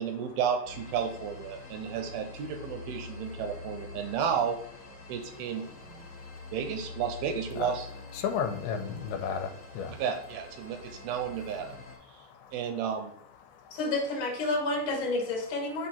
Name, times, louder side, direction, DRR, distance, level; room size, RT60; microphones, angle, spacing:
voice 1, 0.0-4.6 5.1-6.1 6.5-7.9 10.0-11.8 12.1-13.1, right 7 dB, 80° right, 5 dB, 2.4 m, -32 dB
sound 1, 0.6-12.0, left 3 dB, 10° right, 0.6 m, -46 dB
voice 2, 1.6-2.0 4.0-4.1 5.0-5.2 5.9-6.5 7.6-7.7 8.1-10.0 10.7-11.1 12.0-12.6 13.4-13.8, left 7 dB, 80° left, 7 dB, 2.5 m, -36 dB
voice 3, 13.7-15.9, left 2 dB, 50° left, -1 dB, 1.7 m, -30 dB
6.6 x 3.7 x 4.3 m, 0.69 s
omnidirectional pair, 4.7 m